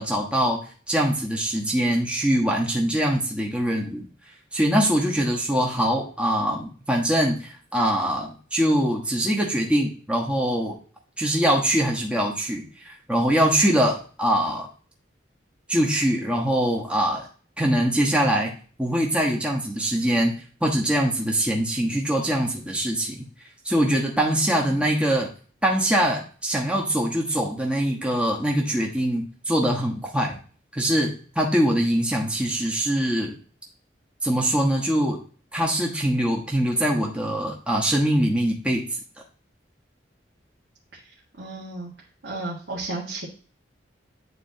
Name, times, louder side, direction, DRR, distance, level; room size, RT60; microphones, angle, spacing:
voice 1, 0.0-4.1 4.5-10.8 11.2-14.7 15.7-17.3 17.6-18.5 18.8-20.3 20.6-23.2 23.6-25.3 25.6-30.4 30.7-33.3 34.2-35.2 35.5-38.8, right 1 dB, 5° right, -2 dB, 1.2 m, -23 dB
voice 2, 24.5-24.9 40.9-41.9 42.2-43.3, right 2 dB, 75° right, -5 dB, 1.6 m, -34 dB
9.6 x 4.2 x 2.7 m, 0.41 s
head